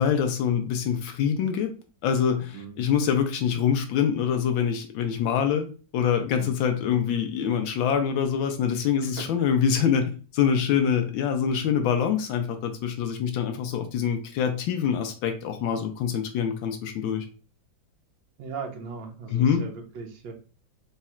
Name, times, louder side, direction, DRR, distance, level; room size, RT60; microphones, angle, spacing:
voice 1, 0.0-1.7 2.0-5.7 5.9-17.2 19.3-19.6, left 7 dB, 85° left, 5 dB, 1.4 m, -25 dB
voice 2, 6.3-6.7 9.0-9.2 18.4-20.3, right 5 dB, 75° right, 3 dB, 1.5 m, -38 dB
4.1 x 2.4 x 4.2 m, 0.36 s
omnidirectional pair, 2.1 m